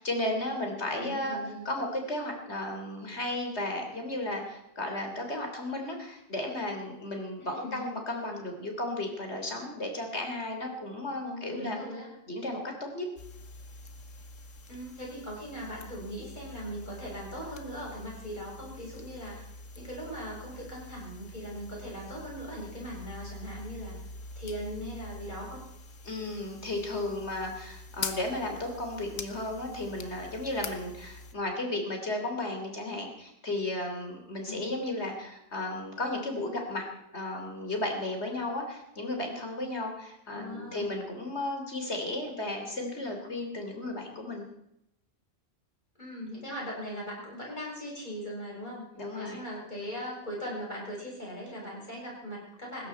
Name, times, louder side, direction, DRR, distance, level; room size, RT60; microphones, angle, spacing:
voice 1, 0.0-1.4 1.7-11.8 12.3-12.6 12.9-13.1 26.0-36.8 37.1-44.4 49.0-49.4, left 1 dB, 55° left, 3 dB, 3.7 m, -34 dB
voice 2, 1.0-1.7 7.4-7.8 11.2-12.1 14.7-19.5 19.7-24.0 24.4-25.7 34.4-34.7 40.3-41.0 46.0-48.8 49.2-52.9, equal, 35° left, -3 dB, 7.8 m, -40 dB
sound 1, 13.2-31.3, left 3 dB, 75° left, 1.5 m, -45 dB
19.5 x 16.0 x 4.5 m, 0.81 s
omnidirectional pair, 1.3 m